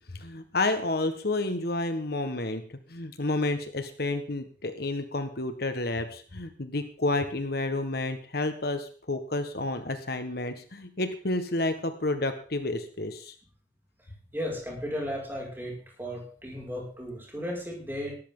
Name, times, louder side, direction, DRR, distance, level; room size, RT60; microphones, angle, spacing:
voice 1, 0.2-13.3, left 2 dB, 60° left, 8 dB, 1.5 m, -30 dB
voice 2, 14.3-18.2, equal, 10° right, -2 dB, 5.9 m, -35 dB
18.0 x 13.5 x 3.9 m, 0.40 s
head